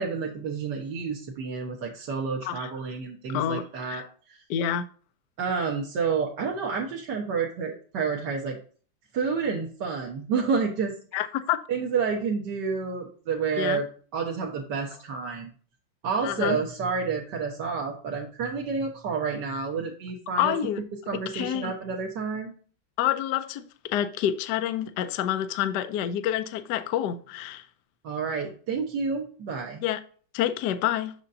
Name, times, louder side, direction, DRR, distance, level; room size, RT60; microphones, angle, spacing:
voice 1, 0.0-4.0 4.3-4.4 5.4-8.6 9.1-10.9 11.7-13.9 14.1-15.5 16.0-20.6 21.1-22.5 28.0-29.8, right 5 dB, 60° right, 1.6 m, -29 dB
voice 2, 3.3-4.0 4.5-4.8 11.1-11.6 13.6-13.8 16.2-16.6 20.4-20.8 21.3-21.7 23.0-27.7 29.8-30.0 30.3-31.1, left 11 dB, 70° left, 1.1 m, -28 dB
6.8 x 6.5 x 2.5 m
omnidirectional pair, 2.2 m